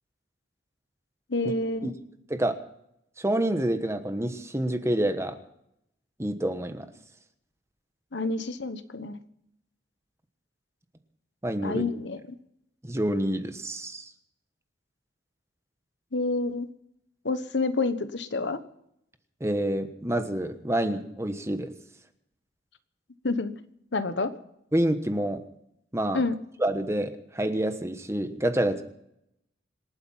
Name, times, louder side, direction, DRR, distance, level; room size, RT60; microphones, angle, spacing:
voice 1, 1.3-1.9 8.1-9.2 11.6-12.4 16.1-16.7 17.2-18.6 23.2-23.5 23.9-24.3 26.1-26.4, left 3 dB, 75° left, 12 dB, 1.1 m, -28 dB
voice 2, 3.2-5.4 6.2-6.9 11.4-11.8 12.8-14.1 19.4-21.7 24.7-25.4 25.9-26.2 26.6-28.8, right 1 dB, 15° right, 8 dB, 1.2 m, -27 dB
26.5 x 9.0 x 5.7 m, 0.76 s
head